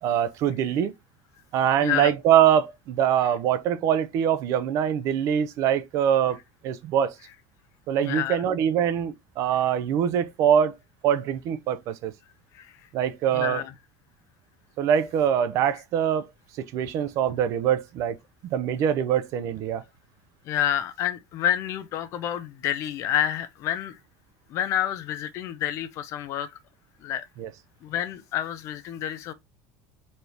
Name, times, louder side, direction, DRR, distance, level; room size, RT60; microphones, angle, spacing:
voice 1, 0.0-0.9 1.5-6.4 6.6-7.1 7.9-10.7 11.0-12.1 12.9-13.6 14.8-16.3 16.6-18.2 18.4-19.8 27.4-27.5, right 9 dB, 45° right, 0.6 m, -23 dB
voice 2, 1.8-2.1 8.0-8.4 12.5-12.7 13.3-13.7 20.5-24.0 24.5-26.5 27.0-27.3 27.8-29.3, left 11 dB, 40° left, 0.5 m, -28 dB
4.3 x 3.3 x 2.7 m
cardioid pair, 175°, 8 cm